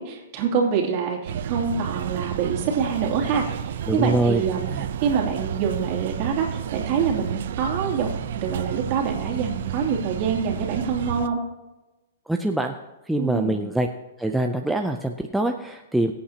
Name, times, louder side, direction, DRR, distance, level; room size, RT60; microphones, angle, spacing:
voice 1, 0.0-4.7 5.0-11.4 13.2-13.6, right 6 dB, 35° right, -1 dB, 2.7 m, -26 dB
sound 1, 1.3-11.3, right 8 dB, 60° right, 0.6 m, -31 dB
voice 2, 3.9-4.4 4.7-4.9 12.3-12.7 13.1-13.9 14.2-16.1, right 1 dB, ahead, 3 dB, 0.4 m, -24 dB
23.0 x 8.6 x 2.9 m, 1.1 s
hypercardioid pair, 160°, 0 cm